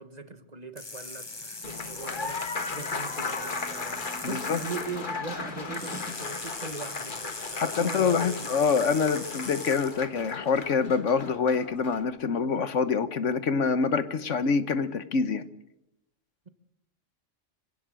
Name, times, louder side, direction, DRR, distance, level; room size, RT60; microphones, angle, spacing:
voice 1, 0.0-8.5, right 4 dB, 35° right, 1.4 m, -40 dB
sound 1, 0.8-5.0 5.7-10.0, left 3 dB, 20° left, 1.0 m, -40 dB
Applause, 1.6-12.0, left 4 dB, 45° left, 1.5 m, -37 dB
Snare drum, 1.6-6.5, right 1 dB, 5° right, 1.9 m, -46 dB
voice 2, 4.2-4.6 7.6-15.5, left 5 dB, 75° left, 1.4 m, -26 dB
25.0 x 17.0 x 7.6 m
omnidirectional pair, 1.3 m